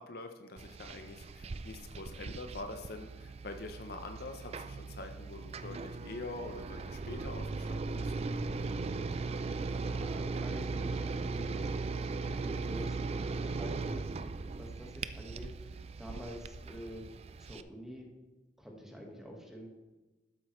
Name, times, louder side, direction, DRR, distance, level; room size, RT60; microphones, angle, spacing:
voice 1, 0.0-8.1, left 2 dB, 55° left, 6 dB, 0.7 m, -45 dB
sound 1, 0.6-17.6, right 3 dB, 35° right, 0.3 m, -38 dB
voice 2, 9.8-11.7 12.0-17.1 17.4-18.1 18.6-19.7, equal, ahead, 0 dB, 1.5 m, -48 dB
12.5 x 8.1 x 3.2 m, 1.1 s
head